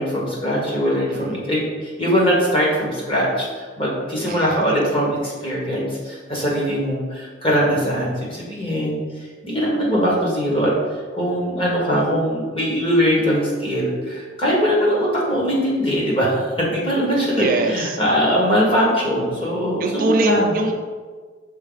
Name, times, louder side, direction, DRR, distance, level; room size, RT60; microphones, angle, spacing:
voice 1, 0.0-9.0 9.4-10.7 11.1-20.5, equal, 25° left, -4 dB, 1.5 m, -21 dB
voice 2, 4.2-4.6 17.3-18.0 19.8-20.7, right 2 dB, 45° right, 4 dB, 0.4 m, -23 dB
5.5 x 4.2 x 4.0 m, 1.5 s
head